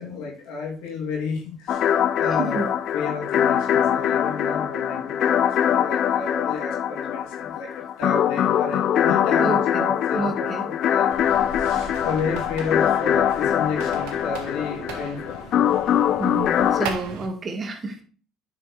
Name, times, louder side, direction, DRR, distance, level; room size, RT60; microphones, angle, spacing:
voice 1, 0.0-1.9 2.2-7.7 8.0-11.1 11.5-15.5, left 5 dB, 75° left, -2 dB, 3.0 m, -31 dB
sound 1, 1.7-16.9, left 9 dB, 60° left, 0.6 m, -22 dB
voice 2, 2.3-2.7 9.4-9.9 10.1-10.6 16.2-18.0, right 3 dB, 40° right, 5 dB, 1.9 m, -29 dB
sound 2, 11.1-17.3, right 5 dB, 75° right, 1.5 m, -37 dB
8.9 x 6.2 x 3.4 m, 0.41 s
hypercardioid pair, 70°, 0 cm